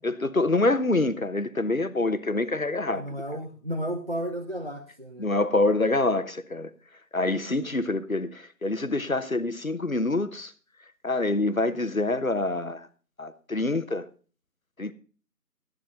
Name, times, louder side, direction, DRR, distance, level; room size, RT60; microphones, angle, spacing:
voice 1, 0.0-3.2 5.2-6.7 7.1-10.5 11.0-12.9 13.2-14.1 14.8-14.9, left 2 dB, 55° left, 1.1 m, -26 dB
voice 2, 2.9-5.3, equal, 35° right, 1.2 m, -33 dB
13.5 x 10.5 x 3.9 m
figure-of-eight pair, 175°, 49 cm